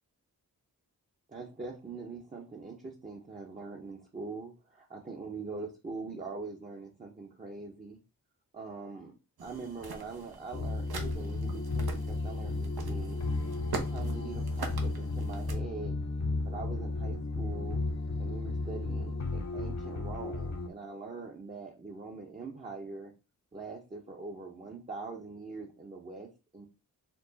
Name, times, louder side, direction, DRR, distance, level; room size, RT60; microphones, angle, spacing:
voice 1, 1.3-8.0 8.5-9.1 9.4-13.2 13.7-16.0 16.4-17.8 18.2-23.1 23.5-26.7, right 4 dB, 20° right, 0 dB, 0.6 m, -43 dB
sound 1, 9.4-15.5, right 4 dB, 90° right, 0.9 m, -43 dB
sound 2, 10.5-20.7, left 3 dB, 50° left, 0.6 m, -33 dB
4.5 x 2.3 x 3.9 m, 0.30 s
wide cardioid pair, 100°, 36 cm